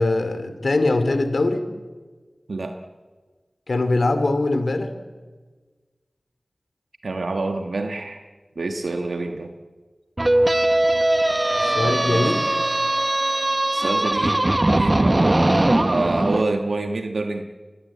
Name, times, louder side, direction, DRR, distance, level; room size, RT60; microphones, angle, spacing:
voice 1, 0.0-1.6 3.7-4.9 11.8-12.4, left 2 dB, 75° left, 10 dB, 2.5 m, -21 dB
voice 2, 7.0-8.2 8.6-9.5 11.8-12.4 13.7-14.4 14.7-17.4, right 3 dB, 85° right, 5 dB, 1.4 m, -27 dB
sound 1, 10.2-16.4, right 1 dB, 30° right, 0.9 m, -20 dB
22.5 x 20.5 x 8.6 m, 1.4 s
wide cardioid pair, 55°, 0 cm